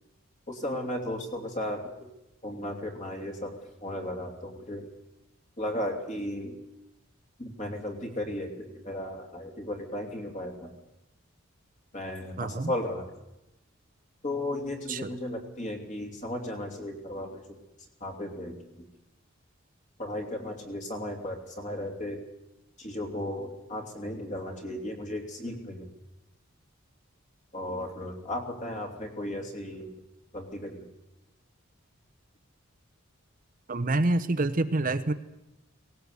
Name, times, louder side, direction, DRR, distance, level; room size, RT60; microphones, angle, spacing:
voice 1, 0.5-2.1 2.4-3.5 3.8-4.9 5.6-6.6 7.4-10.7 11.9-13.1 14.2-17.6 18.0-18.9 20.0-22.2 22.8-25.9 27.5-29.9 30.3-30.9, left 1 dB, 35° left, 4 dB, 3.0 m, -35 dB
voice 2, 12.4-12.7 14.9-15.0 33.7-35.1, right 2 dB, 40° right, 10 dB, 0.8 m, -26 dB
18.0 x 18.0 x 8.3 m, 0.90 s
head